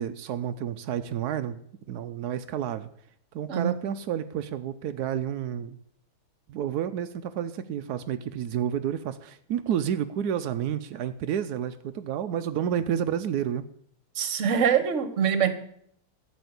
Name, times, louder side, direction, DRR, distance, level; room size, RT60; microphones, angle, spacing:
voice 1, 0.0-1.6 1.9-2.9 3.3-5.8 6.5-13.6, right 9 dB, 85° right, 9 dB, 0.8 m, -30 dB
voice 2, 3.5-3.8 14.1-15.5, right 7 dB, 45° right, 11 dB, 1.2 m, -24 dB
13.0 x 7.8 x 8.0 m, 0.68 s
omnidirectional pair, 2.4 m